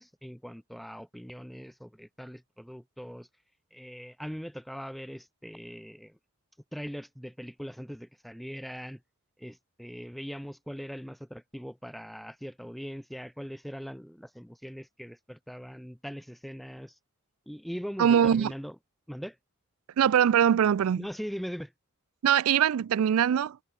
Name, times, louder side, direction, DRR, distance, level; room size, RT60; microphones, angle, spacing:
voice 1, 0.0-3.3 3.7-6.2 6.7-9.0 9.4-16.9 17.5-18.7 19.1-19.4 21.0-21.7, equal, ahead, 1.0 m, -41 dB
voice 2, 18.0-18.5 20.0-21.1 22.2-23.6, right 9 dB, 90° right, 0.4 m, -22 dB
head